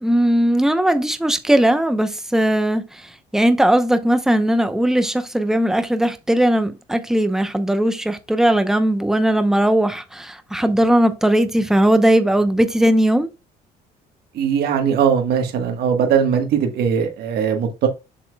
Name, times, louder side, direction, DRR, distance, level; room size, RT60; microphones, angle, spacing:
voice 1, 0.0-13.3, right 1 dB, 5° right, 0.8 m, -18 dB
voice 2, 14.3-17.9, right 7 dB, 70° right, 1.4 m, -19 dB
7.3 x 6.8 x 2.3 m
cardioid pair, 110°, 17 cm